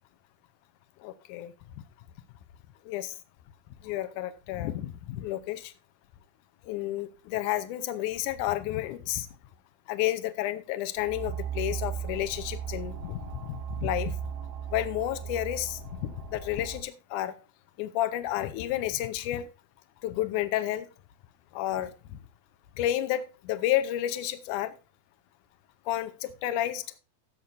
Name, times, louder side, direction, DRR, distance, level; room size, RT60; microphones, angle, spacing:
voice 1, 1.0-1.5 2.9-3.2 3.8-5.7 6.6-9.3 9.9-14.2 14.7-17.3 17.8-19.5 20.0-20.9 21.5-22.2 22.8-24.7 25.9-26.8, left 13 dB, 80° left, 1.9 m, -31 dB
sound 1, 11.0-16.8, right 8 dB, 80° right, 3.3 m, -37 dB
17.0 x 7.4 x 2.6 m
omnidirectional pair, 4.2 m